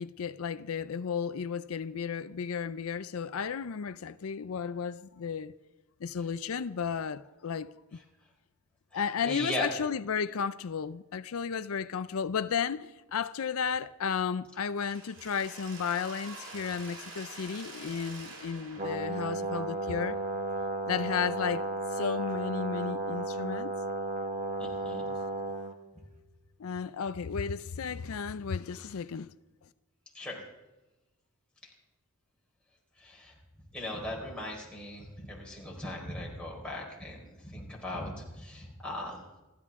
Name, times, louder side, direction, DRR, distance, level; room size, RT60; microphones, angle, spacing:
voice 1, 0.0-5.5 6.0-8.0 8.9-20.2 20.9-23.7 26.6-29.3, left 6 dB, 75° left, 0.5 m, -33 dB
voice 2, 8.9-9.7 24.6-25.1 25.9-26.0 30.1-30.4 31.6-31.7 33.0-33.3 33.7-39.2, left 1 dB, 5° left, 4.3 m, -38 dB
Mechanisms, 14.8-20.6, right 2 dB, 60° right, 2.6 m, -47 dB
Brass instrument, 18.8-25.7, right 2 dB, 35° right, 1.4 m, -34 dB
28.5 x 12.5 x 3.7 m
head